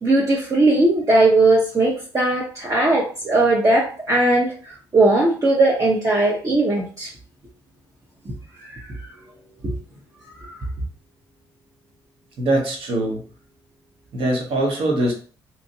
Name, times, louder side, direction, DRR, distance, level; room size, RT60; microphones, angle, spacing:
voice 1, 0.0-4.5 4.9-7.1 8.6-8.7 9.6-9.8 10.4-10.6, right 2 dB, 35° right, -4 dB, 0.8 m, -18 dB
voice 2, 12.4-13.2 14.1-15.1, right 1 dB, 65° right, 0 dB, 1.1 m, -22 dB
2.9 x 2.5 x 2.7 m, 0.38 s
hypercardioid pair, 50°, 10 cm